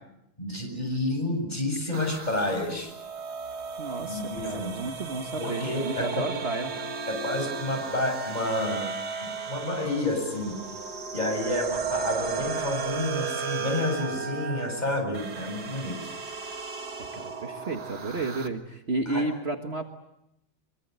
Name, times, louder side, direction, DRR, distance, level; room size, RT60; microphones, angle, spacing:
voice 1, 0.4-2.9 4.0-4.8 5.4-6.3 7.1-8.9 9.2-10.5 11.1-16.1 19.1-19.3, left 1 dB, 25° left, 4 dB, 7.8 m, -30 dB
sound 1, 1.9-18.5, right 5 dB, 85° right, 2.3 m, -35 dB
voice 2, 3.8-6.8 17.1-19.8, right 2 dB, 40° right, 4 dB, 1.8 m, -32 dB
25.5 x 24.0 x 8.2 m, 0.84 s
omnidirectional pair, 1.7 m